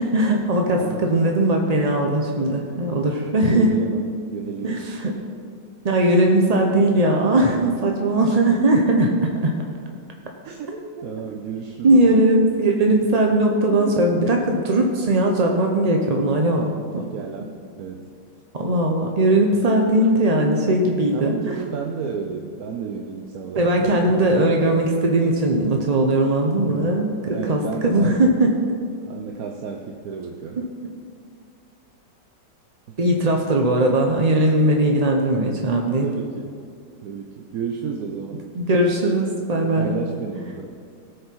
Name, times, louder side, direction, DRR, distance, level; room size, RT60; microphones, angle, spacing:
voice 1, 0.0-3.7 4.6-5.1 5.8-9.5 10.7-10.8 11.8-17.0 18.5-21.6 23.5-28.7 33.0-36.1 38.6-40.0, right 1 dB, 45° right, 1 dB, 0.5 m, -19 dB
voice 2, 3.5-4.8 10.4-10.7 11.0-12.2 13.7-14.0 16.6-17.5 17.8-18.1 21.1-24.3 26.7-27.0 27.3-28.2 29.0-30.7 36.0-36.6 37.0-38.5 39.8-40.7, right 6 dB, 65° right, 2 dB, 1.1 m, -32 dB
17.5 x 6.4 x 4.6 m, 2.2 s
omnidirectional pair, 1.9 m